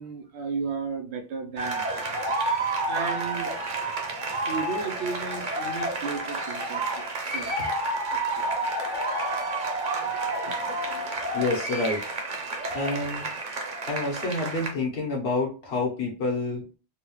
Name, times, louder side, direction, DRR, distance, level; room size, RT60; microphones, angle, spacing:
voice 1, 0.0-2.0 2.9-3.6 4.4-6.9 7.2-7.7 8.1-8.5, right 5 dB, 80° right, 1.0 m, -34 dB
sound 1, 1.6-14.7, right 2 dB, 50° right, 0.9 m, -30 dB
voice 2, 11.3-12.1 12.7-13.3 13.8-16.6, left 2 dB, 70° left, 1.4 m, -28 dB
3.9 x 2.4 x 3.0 m
omnidirectional pair, 1.1 m